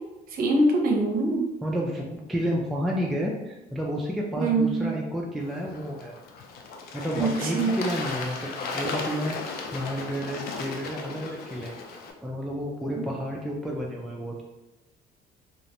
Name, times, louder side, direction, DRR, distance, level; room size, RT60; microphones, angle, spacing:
voice 1, 0.3-1.4 4.4-4.8 7.1-7.7, right 2 dB, 60° right, 1 dB, 0.6 m, -23 dB
voice 2, 1.6-6.2 6.9-11.8 12.2-14.4, equal, ahead, -2 dB, 0.3 m, -31 dB
Bird / Water, 5.4-12.1, left 4 dB, 65° left, 0.4 m, -35 dB
2.4 x 2.0 x 2.8 m, 1.0 s
cardioid pair, 110°, 17 cm